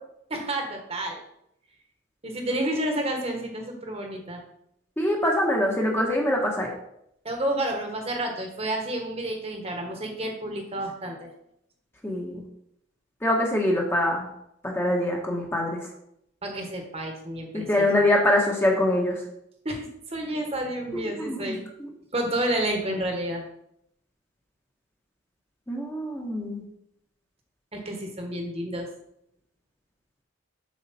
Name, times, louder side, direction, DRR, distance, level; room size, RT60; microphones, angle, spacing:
voice 1, 0.3-1.2 2.2-4.4 7.2-11.3 16.4-17.9 19.6-21.6 22.1-23.4 27.7-28.9, right 1 dB, 30° right, 3 dB, 1.4 m, -30 dB
voice 2, 5.0-6.7 12.0-12.4 13.2-14.2 14.6-15.8 17.5-19.2 21.2-21.5 21.8-21.9 25.7-26.6, left 1 dB, 10° left, -1 dB, 1.2 m, -24 dB
7.5 x 6.6 x 4.3 m, 0.76 s
head